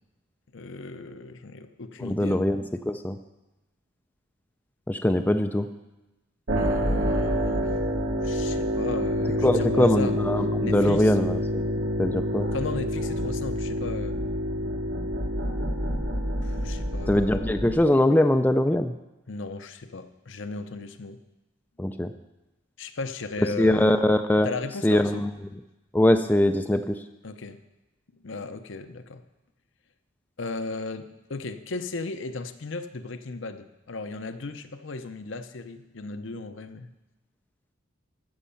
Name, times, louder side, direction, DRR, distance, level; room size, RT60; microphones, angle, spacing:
voice 1, 0.5-2.5 6.6-7.7 8.2-10.2 10.6-11.2 12.5-14.2 16.4-17.4 19.3-21.2 22.8-24.0 24.4-25.3 27.2-27.6 28.2-29.2 30.4-36.9, left 3 dB, 65° left, 9 dB, 0.7 m, -36 dB
voice 2, 2.0-3.2 4.9-5.7 9.4-11.6 12.0-12.5 17.1-18.9 21.8-22.1 23.6-24.5 24.8-25.3 25.9-26.8, left 1 dB, 10° left, 7 dB, 0.3 m, -22 dB
sound 1, 6.5-17.7, equal, 65° right, 1.5 m, -27 dB
15.5 x 6.4 x 5.7 m, 1.0 s
head